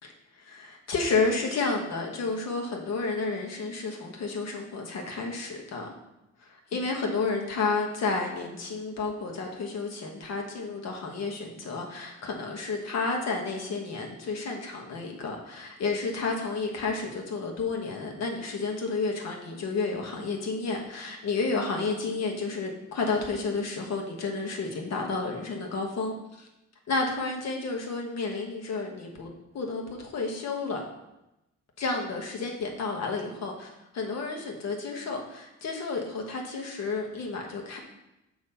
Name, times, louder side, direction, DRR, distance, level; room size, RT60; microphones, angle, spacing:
voice 1, 0.0-5.9 6.7-26.5 26.9-30.8 31.8-37.8, left 3 dB, 60° left, 1 dB, 1.4 m, -31 dB
6.7 x 3.1 x 5.5 m, 0.95 s
cardioid pair, 90°, 30 cm